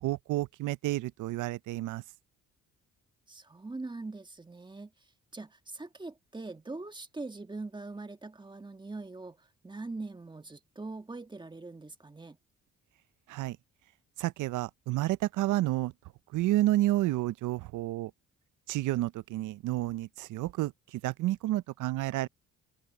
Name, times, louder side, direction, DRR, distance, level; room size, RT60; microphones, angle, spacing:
voice 1, 0.0-2.0 13.3-13.6 14.2-15.9 16.3-18.1 18.7-22.3, right 16 dB, 80° right, 0.6 m, -30 dB
voice 2, 3.3-4.9 5.3-12.4, right 3 dB, 15° right, 1.5 m, -42 dB
cardioid pair, 90°, 30 cm